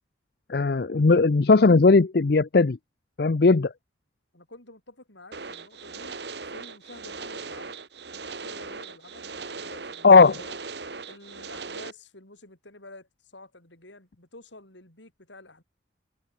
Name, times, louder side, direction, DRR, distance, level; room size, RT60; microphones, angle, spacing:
voice 1, 0.5-2.8 3.2-3.7 10.0-10.4, left 4 dB, 55° left, 0.6 m, -17 dB
voice 2, 4.3-6.2 6.5-7.8 8.4-10.6 11.1-15.6, left 2 dB, 75° left, 7.1 m, -49 dB
sound 1, 5.3-11.9, right 4 dB, 65° right, 2.2 m, -39 dB
head